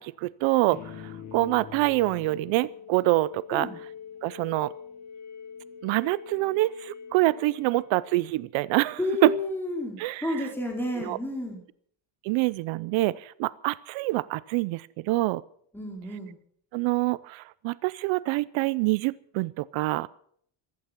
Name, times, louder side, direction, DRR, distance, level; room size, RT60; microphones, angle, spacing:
voice 1, 0.0-3.7 4.2-4.7 5.8-9.3 10.0-10.5 11.0-11.2 12.2-15.4 16.7-20.1, right 19 dB, 80° right, 19 dB, 0.7 m, -26 dB
sound 1, 0.7-8.6, left 7 dB, 35° left, 2.3 m, -44 dB
voice 2, 9.0-11.6 15.7-16.3, left 1 dB, 5° left, 0 dB, 4.6 m, -31 dB
15.5 x 14.5 x 6.0 m, 0.62 s
cardioid pair, 150°, 46 cm